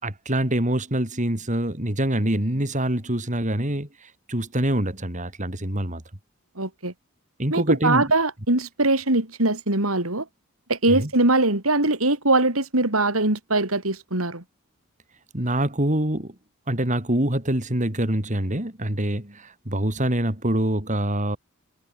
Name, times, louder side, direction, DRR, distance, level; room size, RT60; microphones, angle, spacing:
voice 1, 0.0-6.0 7.4-8.1 10.9-11.1 15.3-16.3 16.7-21.4, right 1 dB, 35° right, 3.9 m, -25 dB
voice 2, 6.6-6.9 7.5-10.3 10.7-14.4, right 2 dB, 90° right, 5.7 m, -22 dB
head